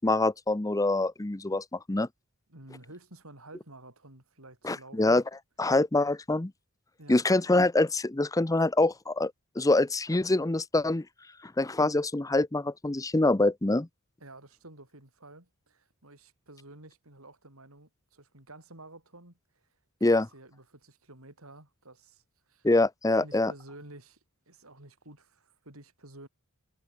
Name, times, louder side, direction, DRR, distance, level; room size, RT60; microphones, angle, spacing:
voice 1, 0.0-2.1 4.6-5.2 5.6-6.5 7.1-11.0 11.4-13.9 20.0-20.3 22.6-23.5, left 2 dB, 15° left, 0.7 m, -25 dB
voice 2, 2.5-5.2 7.0-7.4 14.2-19.7 20.0-22.7 23.2-24.2 24.5-26.3, right 2 dB, 80° right, 8.0 m, -51 dB
head